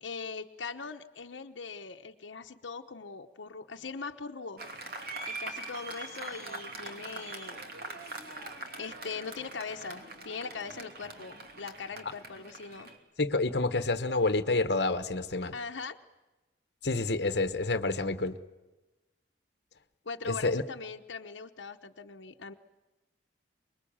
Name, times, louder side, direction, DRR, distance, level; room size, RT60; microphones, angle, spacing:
voice 1, 0.0-4.6 5.3-7.6 8.7-12.9 15.5-16.0 20.0-22.5, left 5 dB, 80° left, 4 dB, 1.0 m, -41 dB
Applause, 4.6-13.0, right 2 dB, 55° right, 2.9 m, -42 dB
voice 2, 13.2-15.5 16.8-18.4 20.3-20.6, left 3 dB, 60° left, 10 dB, 1.1 m, -28 dB
24.5 x 22.0 x 8.8 m, 1.1 s
head